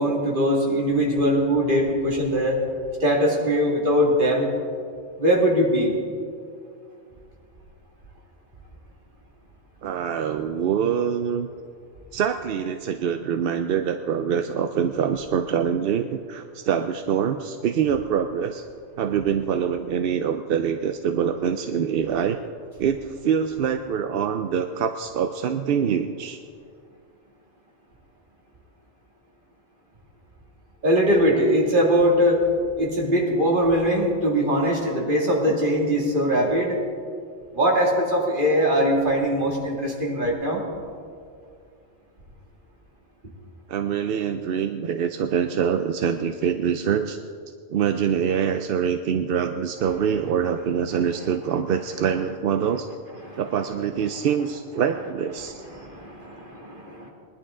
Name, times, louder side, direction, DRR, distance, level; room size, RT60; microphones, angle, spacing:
voice 1, 0.0-2.6 3.0-4.5 5.2-6.0 30.8-32.4 32.8-36.8 37.5-40.6 53.2-53.4 55.7-57.1, equal, 45° right, -2 dB, 2.3 m, -21 dB
voice 2, 9.8-11.5 12.1-18.6 19.0-22.4 22.8-26.4 43.7-47.2 47.7-52.9 53.4-55.6, right 8 dB, 60° right, 7 dB, 0.7 m, -25 dB
20.0 x 11.5 x 3.7 m, 2.3 s
omnidirectional pair, 1.2 m